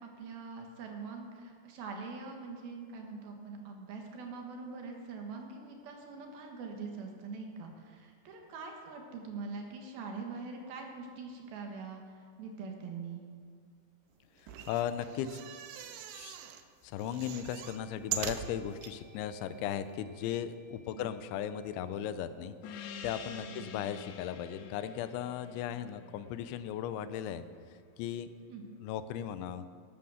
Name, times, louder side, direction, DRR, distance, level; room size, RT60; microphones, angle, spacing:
voice 1, 0.0-13.2 20.9-21.1 23.5-23.7 28.5-28.7, right 4 dB, 65° right, 2 dB, 3.0 m, -43 dB
sound 1, 14.4-16.6 17.0-18.9 19.5-19.6 19.8-19.9, right 9 dB, 80° right, 2.8 m, -41 dB
voice 2, 14.7-15.4 16.1-16.4 16.8-27.4 28.0-28.3 28.8-29.7, left 9 dB, 90° left, 12 dB, 3.1 m, -37 dB
sound 2, 16.3-16.5 17.0-23.2, left 2 dB, 40° left, 3.6 m, -64 dB
Gong, 22.6-27.6, left 6 dB, 75° left, 2.9 m, -48 dB
13.0 x 12.5 x 6.4 m, 2.2 s
omnidirectional pair, 5.2 m